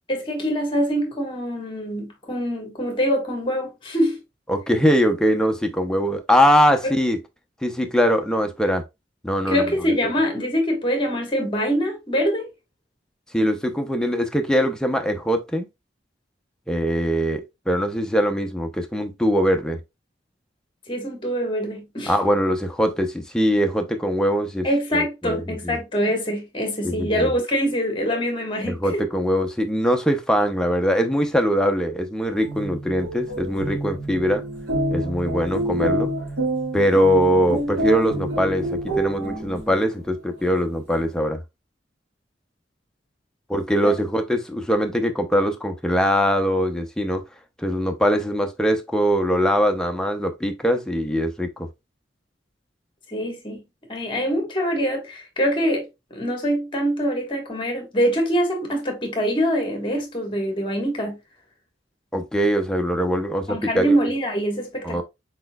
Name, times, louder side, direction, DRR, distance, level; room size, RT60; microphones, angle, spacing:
voice 1, 0.1-4.2 6.8-6.9 9.5-12.5 20.9-22.1 24.6-29.0 43.8-43.9 53.1-53.6 53.9-61.2 63.5-65.0, equal, 30° left, 1.4 m, -24 dB
voice 2, 4.5-7.2 7.6-8.8 9.2-9.6 13.3-15.7 16.7-19.8 22.1-24.7 24.9-25.8 26.8-27.3 28.6-34.4 34.9-36.1 36.7-41.4 43.5-47.2 47.6-51.7 62.1-64.0 64.8-65.0, equal, 5° left, 0.6 m, -22 dB
sound 1, 32.3-39.9, right 1 dB, 80° right, 2.3 m, -28 dB
4.4 x 4.2 x 2.2 m
head